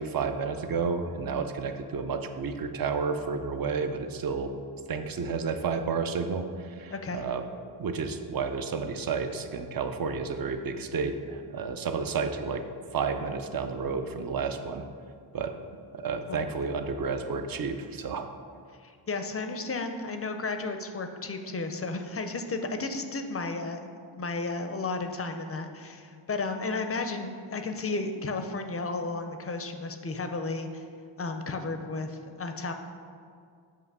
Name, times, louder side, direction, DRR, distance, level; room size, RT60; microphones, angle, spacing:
voice 1, 0.0-4.6 4.9-7.4 7.8-12.6 12.9-14.9 15.3-15.5 15.9-18.3, right 5 dB, 50° right, 7 dB, 0.5 m, -31 dB
voice 2, 6.9-7.2 16.3-16.4 18.8-30.8 31.2-32.7, left 3 dB, 30° left, 6 dB, 0.4 m, -33 dB
7.4 x 2.9 x 6.0 m, 2.2 s
wide cardioid pair, 105°, 48 cm